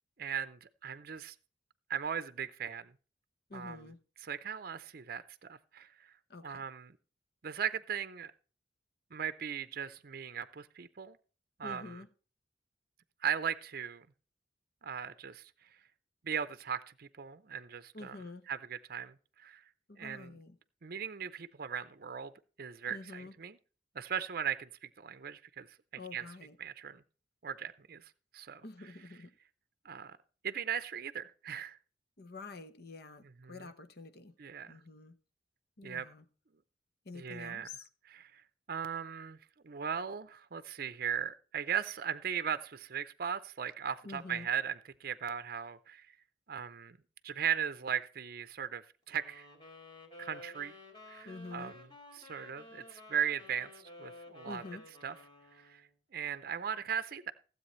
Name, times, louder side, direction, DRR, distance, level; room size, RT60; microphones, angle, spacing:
voice 1, 0.2-1.3 1.9-2.9 3.5-3.8 4.2-6.1 6.4-7.0 7.4-8.3 9.1-11.2 11.6-12.0 13.2-14.1 14.8-15.4 16.2-18.2 18.5-19.6 20.0-20.4 20.8-22.3 22.6-23.6 23.9-25.7 26.1-26.2 26.6-27.0 27.4-28.6 29.8-30.2 30.4-31.8 33.4-33.7 34.4-34.8 35.8-36.1 37.1-37.7 38.0-38.4 38.7-39.4 39.6-46.1 46.5-47.0 47.2-49.5 50.2-50.7 51.1-51.9 52.2-54.6 55.0-55.1 55.6-55.8 56.1-57.3, right 8 dB, 55° right, 0.6 m, -38 dB
voice 2, 3.5-4.0 6.3-6.6 11.6-12.1 17.9-18.5 19.9-20.6 22.9-23.3 26.0-26.6 28.6-29.3 32.2-34.3 34.7-35.2 35.8-36.2 37.0-37.9 44.0-44.5 51.2-51.8 54.4-54.9, left 3 dB, 60° left, 0.9 m, -47 dB
sound 1, 49.1-55.9, left 2 dB, 30° left, 2.7 m, -53 dB
15.5 x 8.0 x 3.2 m
head